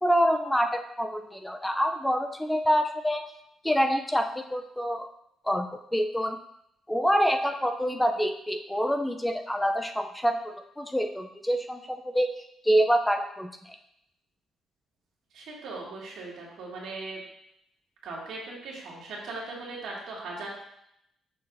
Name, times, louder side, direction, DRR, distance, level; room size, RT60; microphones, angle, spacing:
voice 1, 0.0-3.2 3.6-5.1 5.4-6.4 6.9-12.3 12.6-13.8, equal, 5° left, 5 dB, 0.5 m, -26 dB
voice 2, 15.3-17.2 18.0-20.5, right 3 dB, 80° right, -4 dB, 2.0 m, -39 dB
6.6 x 5.5 x 2.6 m, 0.77 s
cardioid pair, 90°, 0 cm